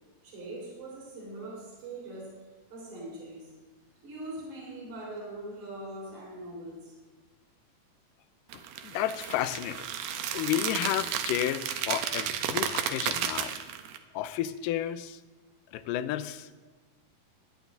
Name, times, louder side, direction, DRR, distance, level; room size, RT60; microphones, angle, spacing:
voice 1, 0.2-2.4 2.7-3.5 4.0-7.0, right 1 dB, 60° right, -5 dB, 5.2 m, -42 dB
voice 2, 8.5-9.9 10.3-13.6 14.1-15.2 15.7-16.5, left 12 dB, 90° left, 13 dB, 2.2 m, -32 dB
sound 1, 8.5-14.0, right 9 dB, 75° right, 2.2 m, -33 dB
18.5 x 11.0 x 2.6 m, 1.2 s
omnidirectional pair, 3.8 m